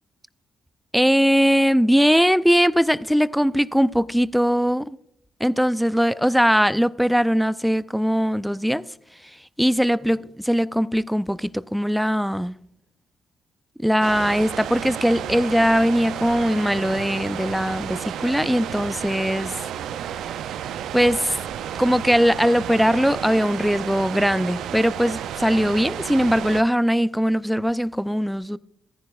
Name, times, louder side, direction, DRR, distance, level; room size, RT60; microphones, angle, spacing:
voice 1, 0.9-5.0 5.4-8.8 9.6-12.5 13.8-19.7 20.9-21.4 21.8-28.6, equal, ahead, 0.4 m, -20 dB
sound 1, 14.0-26.6, right 10 dB, 80° right, 0.4 m, -32 dB
14.0 x 10.5 x 2.4 m
supercardioid pair, 60°, 0 cm